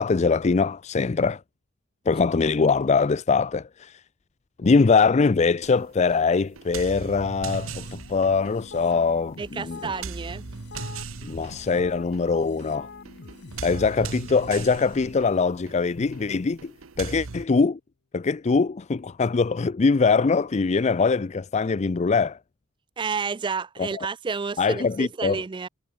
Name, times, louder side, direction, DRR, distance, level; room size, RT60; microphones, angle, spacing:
voice 1, 0.0-1.4 2.1-4.0 4.6-9.9 11.2-12.9 13.6-17.8 18.1-22.4 23.8-24.1 24.6-25.4, left 4 dB, 35° left, 0.4 m, -22 dB
sound 1, 5.6-17.5, right 4 dB, 90° right, 1.0 m, -39 dB
sound 2, 7.4-15.1, left 4 dB, 55° left, 0.9 m, -44 dB
voice 2, 9.4-10.4 23.0-25.7, right 5 dB, 25° right, 0.4 m, -30 dB
Bowed string instrument, 16.0-16.8, left 3 dB, 80° left, 0.7 m, -44 dB
head